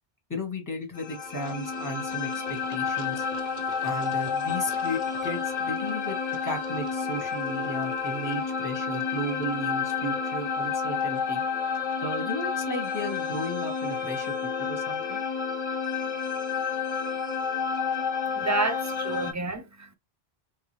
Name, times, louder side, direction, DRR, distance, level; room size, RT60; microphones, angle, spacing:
voice 1, 0.3-3.2 3.8-6.2 6.4-11.4 12.0-14.3 14.6-15.2, equal, 20° left, 1.3 m, -34 dB
sound 1, 1.0-19.3, left 6 dB, 50° left, 0.8 m, -30 dB
voice 2, 18.3-19.9, right 3 dB, 20° right, 0.5 m, -29 dB
3.6 x 2.8 x 3.2 m
omnidirectional pair, 1.1 m